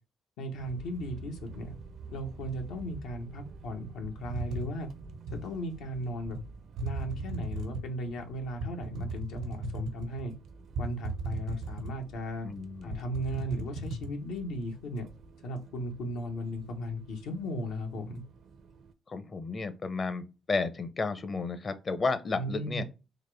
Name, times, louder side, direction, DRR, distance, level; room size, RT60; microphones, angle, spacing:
voice 1, 0.4-1.7 2.1-4.9 5.3-6.4 6.8-10.3 10.8-12.5 12.8-15.0 15.4-18.2 22.3-22.8, equal, 90° left, 1.0 m, -36 dB
sound 1, 0.6-18.9, right 4 dB, 65° right, 0.5 m, -50 dB
sound 2, 4.0-5.5 6.3-6.4 6.8-7.9 8.6-10.3 10.7-12.2 12.5-12.6 12.9-14.1, right 2 dB, 90° right, 1.2 m, -36 dB
voice 2, 12.4-13.0 19.1-22.8, left 4 dB, 40° left, 0.6 m, -32 dB
4.0 x 2.5 x 3.2 m
cardioid pair, 90°, 0 cm